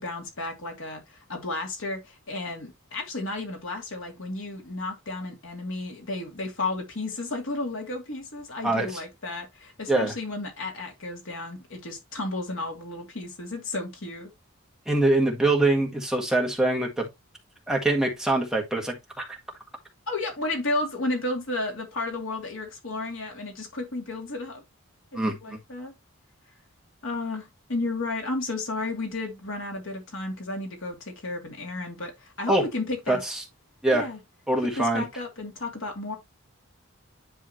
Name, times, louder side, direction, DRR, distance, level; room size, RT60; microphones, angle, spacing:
voice 1, 0.0-14.3 20.1-24.6 25.4-25.9 27.0-33.2 33.9-34.2 34.6-36.2, left 2 dB, 70° left, 2.5 m, -33 dB
voice 2, 14.8-17.1 17.7-19.4 25.1-25.6 32.5-32.6 33.1-33.4 33.8-34.1 34.5-35.0, right 2 dB, 5° right, 1.6 m, -24 dB
10.0 x 3.7 x 3.0 m
head